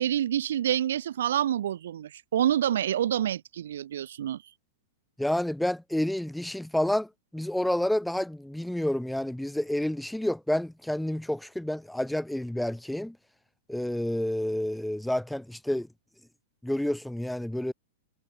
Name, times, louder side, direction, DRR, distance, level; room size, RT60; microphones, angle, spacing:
voice 1, 0.0-4.4, right 10 dB, 75° right, 5.4 m, -27 dB
voice 2, 5.2-7.1 7.3-13.2 13.7-15.9 16.6-17.7, left 1 dB, ahead, 2.0 m, -29 dB
hypercardioid pair, 120°, 0 cm